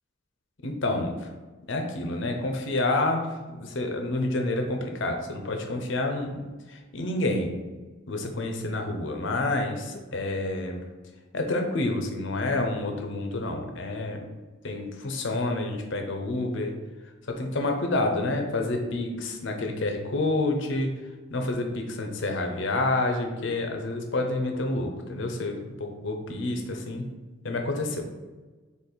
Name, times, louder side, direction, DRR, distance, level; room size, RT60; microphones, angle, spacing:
voice 1, 0.6-1.3 1.7-3.2 3.5-7.6 8.1-10.9 11.3-14.2 14.6-16.7 17.3-20.9 21.3-27.1 27.4-28.1, left 2 dB, 60° left, 3 dB, 0.7 m, -28 dB
4.5 x 2.9 x 4.0 m, 1.3 s
head